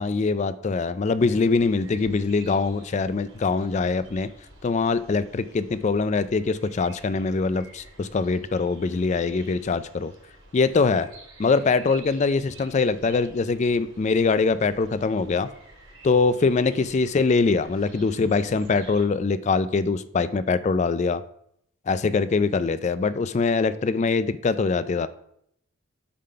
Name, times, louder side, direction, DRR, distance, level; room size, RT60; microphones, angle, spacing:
voice 1, 0.0-4.3 4.6-10.1 10.5-11.1 11.4-15.5 16.0-21.2 21.9-25.1, left 4 dB, 35° left, 14 dB, 0.3 m, -23 dB
sound 1, 1.2-19.1, right 2 dB, 75° right, 3.2 m, -50 dB
8.4 x 3.9 x 5.6 m, 0.71 s
head